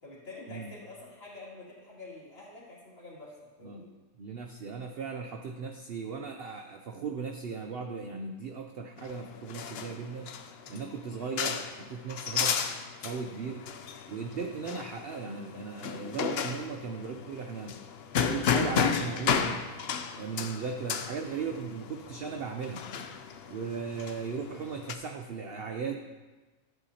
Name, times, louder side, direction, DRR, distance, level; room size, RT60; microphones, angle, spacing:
voice 1, 0.0-3.9, left 3 dB, 35° left, -7 dB, 2.8 m, -47 dB
voice 2, 4.2-10.3 10.7-12.6 13.0-13.7 14.1-17.8 18.2-19.6 20.1-22.8 23.5-26.0, right 5 dB, 70° right, 4 dB, 0.5 m, -37 dB
sound 1, 9.0-24.9, left 7 dB, 70° left, 0.6 m, -33 dB
13.0 x 8.2 x 2.8 m, 1.2 s
omnidirectional pair, 1.7 m